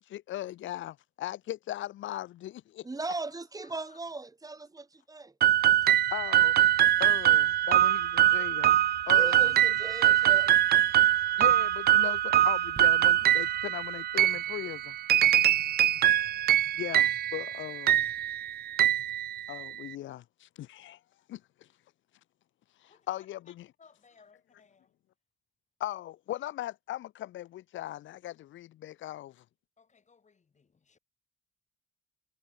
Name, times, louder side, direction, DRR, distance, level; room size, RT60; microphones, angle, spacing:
voice 1, 0.1-2.9 6.1-6.5 7.0-8.7 9.1-9.5 11.4-15.0 16.7-18.1 19.5-21.0 21.3-21.7 22.8-23.7 25.8-29.4, left 13 dB, 75° left, 0.9 m, -38 dB
voice 2, 2.8-5.3 9.1-10.5, right 3 dB, 20° right, 1.1 m, -38 dB
voice 3, 3.6-4.0 15.6-16.4 22.9-23.1 23.8-24.9 29.8-31.0, left 5 dB, 35° left, 4.6 m, -61 dB
sound 1, 5.4-19.9, right 12 dB, 50° right, 0.4 m, -23 dB
sound 2, 14.6-16.3 17.0-17.1, right 5 dB, 35° right, 7.5 m, -55 dB
cardioid pair, 90°, 20 cm